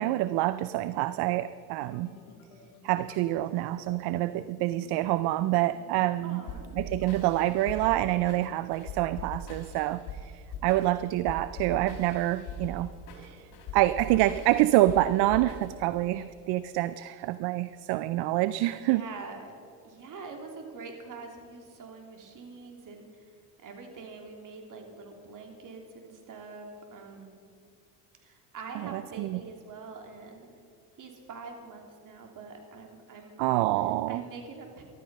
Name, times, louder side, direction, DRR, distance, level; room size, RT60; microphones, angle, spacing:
voice 1, 0.0-2.1 2.8-6.4 6.7-12.9 13.2-19.0 28.9-29.4 33.4-34.2, right 16 dB, 65° right, 14 dB, 0.6 m, -27 dB
sound 1, 1.8-7.4, left 5 dB, 80° left, 2.1 m, -53 dB
voice 2, 6.2-6.7 18.7-19.5 19.8-23.3 23.6-27.4 28.2-30.5 31.0-33.5 34.1-34.8, right 4 dB, 45° right, 2 dB, 3.1 m, -45 dB
sound 2, 6.5-16.0, left 2 dB, 55° left, 3.6 m, -41 dB
15.0 x 12.5 x 5.4 m, 2.4 s
supercardioid pair, 95°, 43 cm